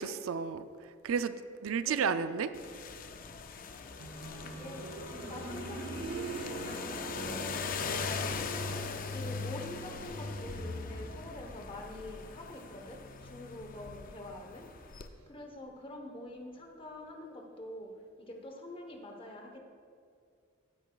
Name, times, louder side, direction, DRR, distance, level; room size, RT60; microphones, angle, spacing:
voice 1, 0.0-1.3 1.6-2.5, right 6 dB, 85° right, 12 dB, 0.4 m, -32 dB
voice 2, 1.8-2.1 4.4-7.4 7.8-8.4 9.1-14.7 15.3-17.9 18.2-19.6, left 1 dB, 25° left, 2 dB, 1.0 m, -46 dB
sound 1, 2.5-15.1, left 4 dB, 40° left, 0.4 m, -40 dB
sound 2, 4.0-14.8 16.1-16.2, right 3 dB, 65° right, 0.9 m, -46 dB
14.5 x 8.8 x 2.3 m, 2.3 s
head